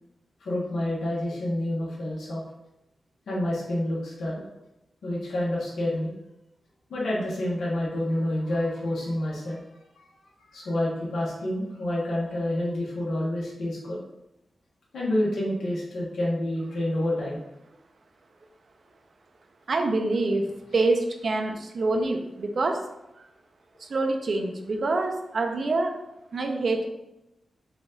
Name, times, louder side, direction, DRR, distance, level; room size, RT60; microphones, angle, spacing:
voice 1, 0.4-2.4 3.3-4.5 5.0-6.1 6.9-9.8 10.4-14.0 14.9-17.4, left 1 dB, 80° left, -5 dB, 1.1 m, -28 dB
voice 2, 19.7-22.8 23.2-23.3 23.8-25.9 26.3-26.9, right 2 dB, 60° right, 4 dB, 0.6 m, -26 dB
5.0 x 2.5 x 3.8 m, 0.92 s
cardioid pair, 80°, 0 cm